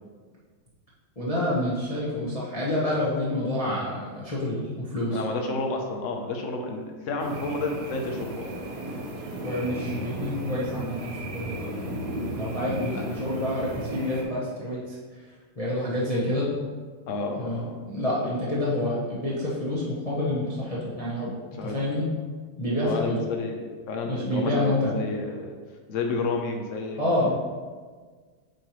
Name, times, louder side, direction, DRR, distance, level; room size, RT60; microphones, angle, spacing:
voice 1, 1.2-5.2 9.4-11.7 12.4-15.0 15.6-16.5 17.3-21.3 21.6-22.1 22.6-23.2 24.0-25.0 27.0-27.4, left 1 dB, 30° left, -7 dB, 0.7 m, -28 dB
voice 2, 5.1-8.5 12.9-13.0 17.1-17.7 21.6-21.8 22.8-25.5 25.9-27.4, left 3 dB, 65° left, 2 dB, 0.7 m, -31 dB
sound 1, 7.2-14.2, right 1 dB, 70° right, 1.7 m, -34 dB
7.6 x 4.6 x 3.1 m, 1.5 s
omnidirectional pair, 2.2 m